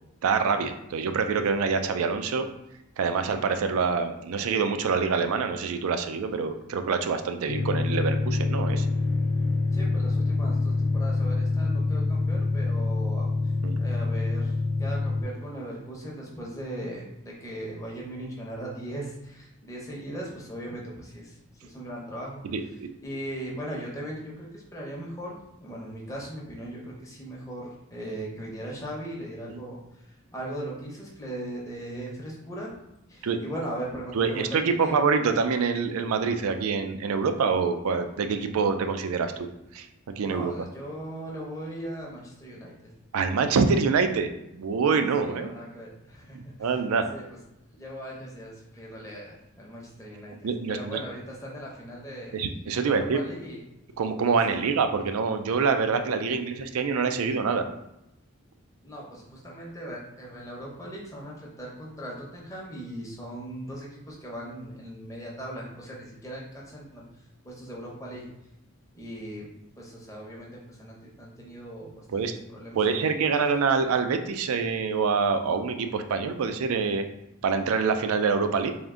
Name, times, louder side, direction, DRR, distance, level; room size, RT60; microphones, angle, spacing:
voice 1, 0.2-2.5 3.0-8.9 13.6-13.8 22.4-22.9 29.5-29.6 33.2-33.4 34.1-39.5 39.7-40.5 43.1-45.5 46.3-47.1 50.4-51.0 52.3-53.2 54.0-57.7 72.1-72.4 72.7-77.0 77.4-78.7, right 5 dB, 80° right, 8 dB, 0.4 m, -26 dB
sound 1, 7.5-15.2, left 3 dB, 80° left, 0.4 m, -26 dB
voice 2, 9.7-13.5 13.8-22.4 23.0-32.8 33.1-34.9 40.2-42.9 45.2-46.8 47.1-47.4 47.7-52.4 52.8-53.6 54.5-54.6 58.8-67.0 67.4-68.3 68.9-69.5 69.8-72.2 72.5-73.1, right 1 dB, 15° left, -3 dB, 0.7 m, -39 dB
3.5 x 2.5 x 3.6 m, 0.86 s
head